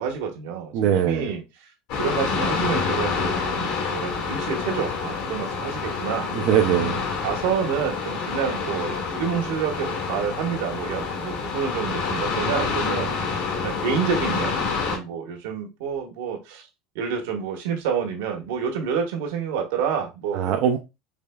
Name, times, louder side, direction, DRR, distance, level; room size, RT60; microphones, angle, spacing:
voice 1, 0.0-1.4 1.9-6.3 7.2-13.3 13.6-16.6 16.9-20.5, right 7 dB, 80° right, 1 dB, 1.3 m, -28 dB
voice 2, 0.7-1.3 6.3-7.0 20.3-20.8, right 9 dB, 45° right, 3 dB, 0.5 m, -21 dB
sound 1, 1.9-15.0, left 5 dB, 55° left, 1.4 m, -27 dB
5.0 x 3.3 x 2.2 m, 0.25 s
cardioid pair, 175°, 0 cm